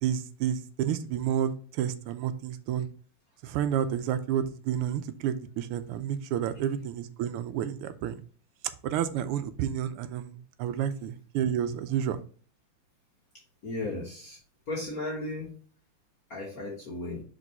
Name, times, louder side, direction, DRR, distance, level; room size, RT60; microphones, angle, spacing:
voice 1, 0.0-2.9 3.4-8.2 8.8-12.2, right 9 dB, 85° right, 11 dB, 1.5 m, -30 dB
voice 2, 13.6-14.4 14.7-15.6 16.3-17.2, left 2 dB, 45° left, -3 dB, 1.5 m, -35 dB
5.1 x 3.9 x 5.4 m, 0.42 s
omnidirectional pair, 2.4 m